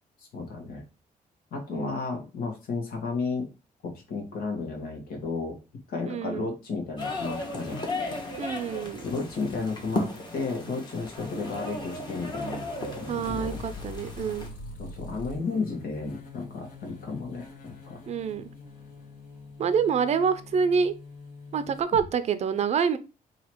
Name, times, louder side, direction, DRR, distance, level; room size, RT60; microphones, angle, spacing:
voice 1, 0.2-0.8 1.5-3.5 3.8-5.6 5.9-7.9 9.0-13.6 14.8-18.0, left 4 dB, 80° left, 1 dB, 1.6 m, -33 dB
voice 2, 6.0-6.5 8.4-9.0 13.1-14.5 18.1-18.5 19.6-20.9 21.5-23.0, right 6 dB, 45° right, 12 dB, 0.5 m, -27 dB
sound 1, 7.0-14.5, left 2 dB, 30° left, 1.3 m, -35 dB
sound 2, 11.2-22.1, left 4 dB, 60° left, 1.5 m, -43 dB
4.0 x 2.9 x 4.6 m, 0.31 s
cardioid pair, 135°, 15 cm